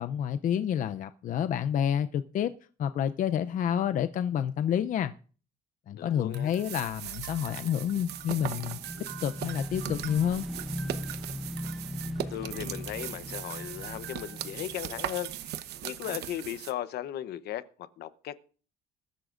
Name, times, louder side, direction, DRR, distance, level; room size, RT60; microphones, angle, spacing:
voice 1, 0.0-2.5 2.8-5.1 5.9-8.8 9.2-10.5, left 9 dB, 50° left, 0.5 m, -29 dB
voice 2, 5.9-6.5 12.3-18.4, left 12 dB, 70° left, 0.9 m, -37 dB
sound 1, 6.3-16.7, right 12 dB, 75° right, 1.0 m, -39 dB
Motorcycle / Engine, 7.8-15.9, equal, ahead, 0.9 m, -40 dB
21.5 x 13.0 x 2.5 m
cardioid pair, 110°, 17 cm